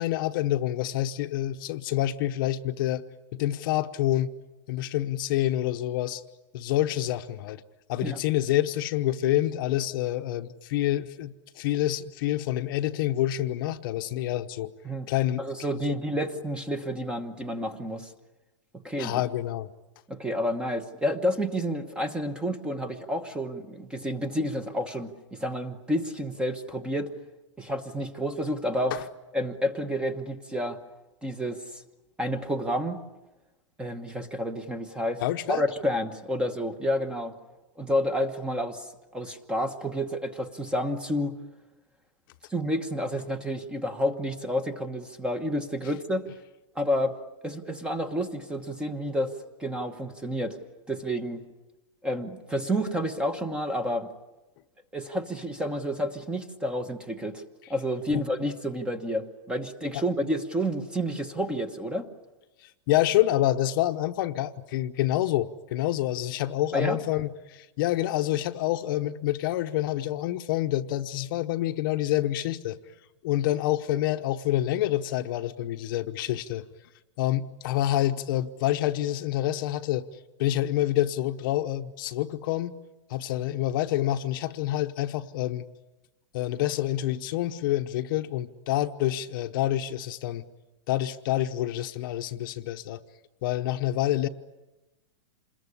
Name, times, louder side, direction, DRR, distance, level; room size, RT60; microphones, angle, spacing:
voice 1, 0.0-3.0 3.3-4.3 4.7-6.2 6.5-7.6 7.9-14.7 15.1-15.4 19.0-19.7 28.9-29.0 35.2-35.6 58.1-58.2 59.9-60.0 62.9-72.8 73.2-76.7 77.2-80.0 80.4-82.8 83.1-85.7 86.3-90.5 90.9-93.0 93.4-94.3, left 14 dB, 45° left, 8 dB, 1.0 m, -27 dB
voice 2, 15.4-18.1 18.8-19.2 20.1-27.1 27.6-29.0 29.3-30.8 31.2-31.8 32.2-33.0 33.8-35.2 35.5-37.3 37.8-41.4 42.5-46.3 46.7-47.2 47.4-49.3 49.6-50.6 50.9-51.4 52.0-54.1 54.9-57.4 57.7-62.1 66.7-67.0, equal, 5° right, 11 dB, 1.1 m, -30 dB
27.5 x 21.5 x 9.9 m, 1.0 s
supercardioid pair, 165°, 16 cm